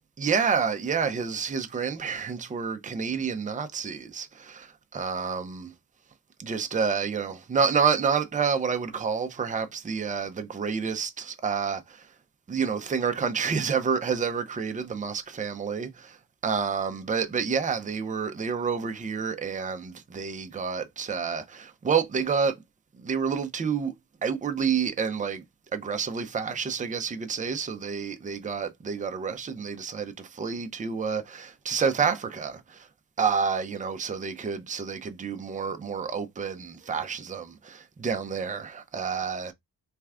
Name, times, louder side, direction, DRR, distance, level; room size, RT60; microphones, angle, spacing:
voice 1, 0.2-5.7 6.4-12.1 12.5-16.2 16.4-22.6 23.0-23.9 24.2-25.4 25.7-32.9 33.2-39.5, right 6 dB, 20° right, 0.5 m, -29 dB
3.3 x 2.3 x 3.5 m
cardioid pair, 100°, 38 cm